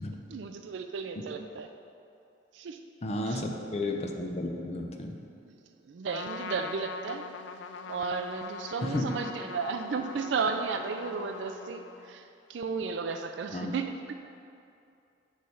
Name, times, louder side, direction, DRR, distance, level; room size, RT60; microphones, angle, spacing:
voice 1, 0.3-1.7 2.5-2.8 3.3-3.4 5.9-7.3 7.9-12.2 12.5-14.1, right 5 dB, 80° right, 6 dB, 0.4 m, -34 dB
voice 2, 3.0-5.2 8.8-9.2 13.5-13.7, left 1 dB, 35° left, 3 dB, 0.6 m, -33 dB
Trumpet, 6.1-12.2, left 5 dB, 80° left, 0.3 m, -42 dB
8.4 x 3.2 x 5.5 m, 2.6 s
head